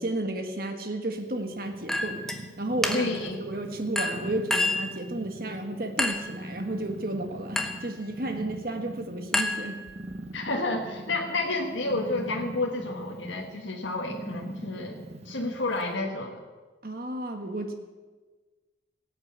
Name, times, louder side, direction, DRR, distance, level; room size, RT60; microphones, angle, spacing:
voice 1, 0.0-2.2 2.6-9.8 16.8-17.7, right 1 dB, 50° right, 5 dB, 1.7 m, -32 dB
Purr, 1.2-16.0, right 1 dB, 35° right, 0.9 m, -42 dB
Chink clink, 1.9-2.4 2.8-3.3 4.0-4.9 6.0-6.4 7.6-7.9 9.3-10.1, left 1 dB, ahead, 0.8 m, -29 dB
voice 2, 2.9-3.4 10.3-16.4, left 2 dB, 85° left, 0 dB, 1.5 m, -30 dB
16.0 x 8.2 x 8.4 m, 1.3 s
head